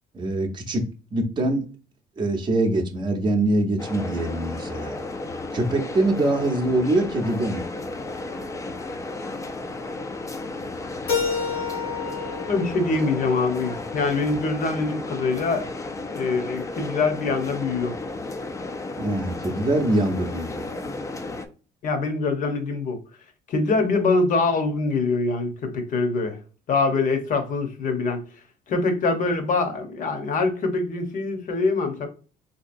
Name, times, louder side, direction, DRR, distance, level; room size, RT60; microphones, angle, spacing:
voice 1, 0.1-0.8 1.1-1.7 2.2-5.0 5.5-7.7 19.0-20.7, right 2 dB, 25° right, 0.7 m, -24 dB
sound 1, 3.8-21.5, left 2 dB, 20° left, 0.4 m, -33 dB
Keyboard (musical), 11.1-14.0, left 6 dB, 80° left, 1.5 m, -30 dB
voice 2, 12.5-15.6 16.1-18.0 21.8-23.0 23.5-26.4 26.7-28.2 28.7-32.1, left 3 dB, 50° left, 0.8 m, -24 dB
3.9 x 2.8 x 2.5 m
cardioid pair, 110°, 17 cm